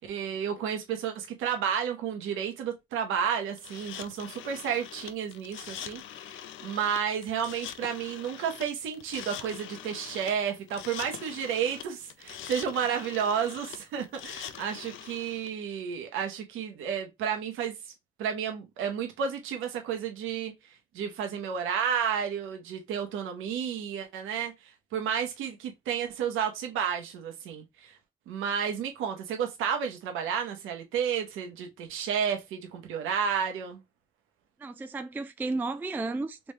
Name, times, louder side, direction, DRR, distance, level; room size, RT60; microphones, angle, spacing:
voice 1, 0.0-17.9 18.2-28.0 28.3-33.8, right 7 dB, 90° right, 0.9 m, -32 dB
sound 1, 3.6-15.5, left 10 dB, 75° left, 0.5 m, -43 dB
voice 2, 34.6-36.5, right 3 dB, 10° right, 0.3 m, -33 dB
3.4 x 3.1 x 3.2 m
cardioid pair, 90°, 20 cm